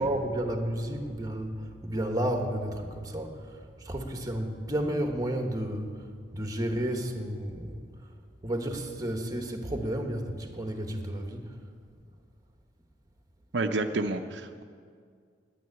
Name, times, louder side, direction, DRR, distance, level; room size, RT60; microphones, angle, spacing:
voice 1, 0.0-6.0 6.3-7.8 8.4-11.6, right 1 dB, 20° right, 4 dB, 1.2 m, -32 dB
voice 2, 13.5-14.6, right 2 dB, 75° right, 6 dB, 0.6 m, -29 dB
9.8 x 9.3 x 9.6 m, 2.1 s
head